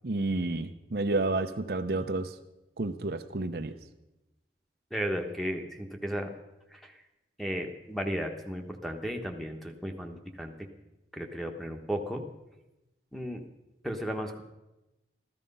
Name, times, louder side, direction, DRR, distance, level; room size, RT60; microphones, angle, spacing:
voice 1, 0.0-2.4 2.8-3.8, right 2 dB, 60° right, 8 dB, 0.7 m, -30 dB
voice 2, 4.9-6.3 6.7-7.0 7.4-10.7 11.1-12.2 13.1-13.4 13.8-14.4, equal, ahead, 4 dB, 1.2 m, -34 dB
14.5 x 13.5 x 5.5 m, 0.98 s
head